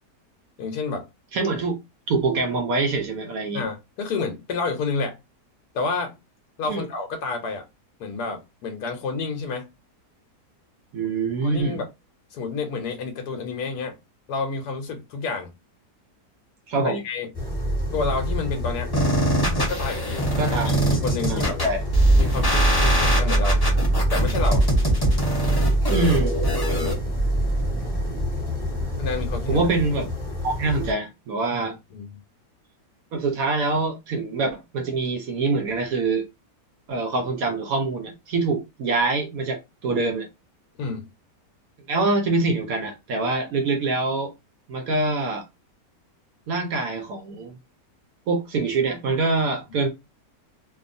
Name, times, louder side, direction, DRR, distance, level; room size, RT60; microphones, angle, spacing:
voice 1, 0.6-1.1 3.5-5.2 5.7-6.2 6.6-7.7 8.0-9.7 11.4-11.9 12.3-14.0 14.3-15.5 16.8-17.3 17.9-18.9 19.6-20.3 20.6-21.6 22.1-23.6 24.1-24.7 26.7-27.0 29.0-29.7 31.5-32.1 40.8-41.1, left 4 dB, 75° left, 1.1 m, -29 dB
voice 2, 1.3-1.8 2.1-3.6 6.7-6.8 10.9-11.8 16.7-17.0 20.4-20.7 21.3-21.8 25.9-26.3 29.5-30.1 30.4-31.8 33.1-36.2 36.9-40.3 41.9-44.3 44.7-45.4 46.5-47.6 48.3-49.9, right 3 dB, 70° right, 0.9 m, -24 dB
sound 1, 17.3-30.9, right 1 dB, 5° left, 1.2 m, -26 dB
sound 2, 18.9-26.9, right 1 dB, 30° left, 0.4 m, -22 dB
2.7 x 2.3 x 2.5 m
omnidirectional pair, 1.8 m